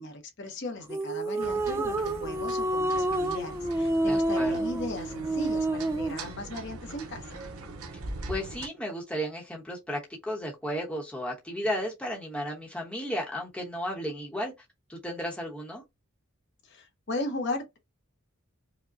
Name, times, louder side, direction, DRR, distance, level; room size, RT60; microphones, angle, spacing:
voice 1, 0.0-7.4 16.6-17.8, left 2 dB, 50° left, 0.9 m, -37 dB
sound 1, 0.9-6.3, right 1 dB, 10° right, 0.3 m, -28 dB
sound 2, 1.4-8.7, right 2 dB, 80° right, 0.8 m, -41 dB
voice 2, 4.1-4.6 8.3-14.5 14.9-15.8, equal, 5° left, 0.9 m, -34 dB
4.9 x 2.2 x 2.5 m
head